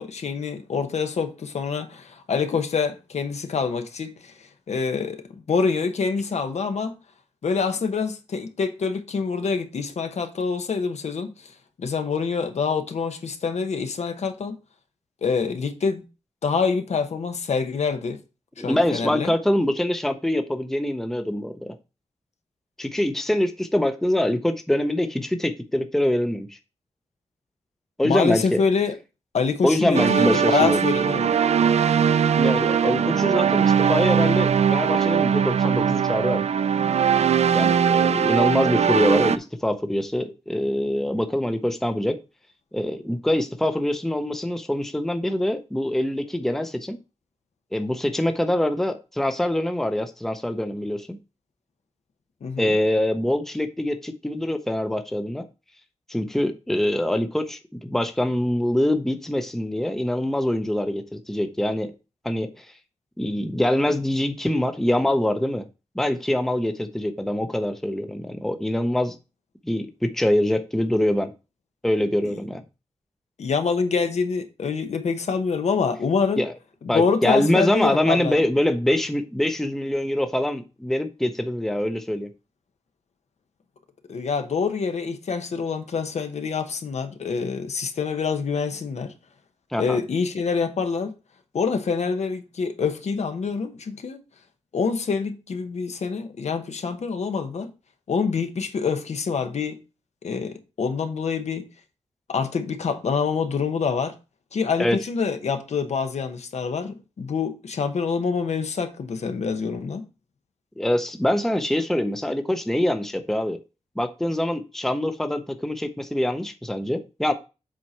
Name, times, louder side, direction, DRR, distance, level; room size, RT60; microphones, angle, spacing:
voice 1, 0.0-7.0 7.4-11.5 11.8-14.6 15.2-16.0 16.4-18.2 18.6-19.3 28.0-28.9 29.3-31.3 52.4-52.7 72.2-72.3 73.4-76.4 76.8-78.4 84.1-89.1 89.7-91.1 91.5-94.2 94.7-97.7 98.1-99.8 100.2-101.7 102.3-104.1 104.5-110.0, left 5 dB, 75° left, 0.9 m, -26 dB
voice 2, 18.6-21.8 22.8-26.6 28.0-28.6 29.6-30.8 32.4-36.4 37.5-42.2 42.7-47.0 47.7-51.2 52.6-55.5 56.1-61.9 62.2-62.7 63.2-65.7 66.0-69.1 69.7-71.3 71.8-72.6 76.4-76.5 76.9-82.3 89.7-90.0 104.8-105.0 110.8-113.6 114.0-117.3, left 1 dB, 5° left, 0.6 m, -24 dB
sound 1, 29.9-39.4, right 7 dB, 70° right, 0.4 m, -20 dB
7.5 x 4.2 x 4.3 m
wide cardioid pair, 130°, 12 cm